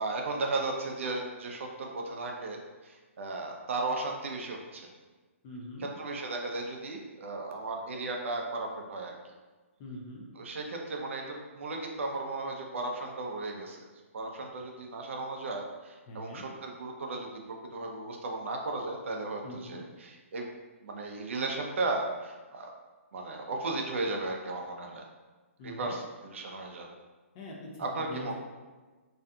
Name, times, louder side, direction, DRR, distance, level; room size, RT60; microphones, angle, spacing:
voice 1, 0.0-4.9 5.8-9.2 10.4-13.8 14.1-20.5 20.8-22.7 23.1-25.0 25.6-26.9 27.8-28.3, right 2 dB, 60° right, 2 dB, 0.4 m, -35 dB
voice 2, 5.4-5.9 9.8-10.2 16.1-16.5 19.4-19.8 25.6-26.0 27.3-28.3, left 1 dB, 25° left, -2 dB, 0.4 m, -43 dB
2.5 x 2.2 x 2.6 m, 1.3 s
hypercardioid pair, 160°, 8 cm